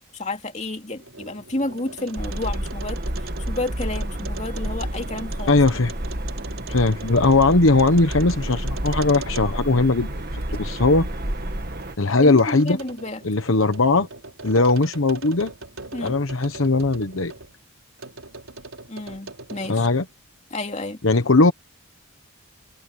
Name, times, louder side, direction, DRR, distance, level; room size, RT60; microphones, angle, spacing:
voice 1, 0.1-3.0 3.5-5.6 12.2-13.2 15.9-16.2 18.9-19.9 20.5-21.0, left 2 dB, 30° left, 2.8 m, -30 dB
sound 1, 0.8-9.8 10.2-17.5 18.0-20.1, right 3 dB, 70° right, 4.1 m, -41 dB
sound 2, 2.2-12.0, right 1 dB, 45° right, 2.0 m, -30 dB
voice 2, 5.5-5.9 6.7-10.2 10.5-11.1 12.0-12.8 13.2-14.1 14.4-15.5 16.0-17.3 19.7-20.0 21.0-21.5, left 3 dB, 65° left, 1.1 m, -19 dB
head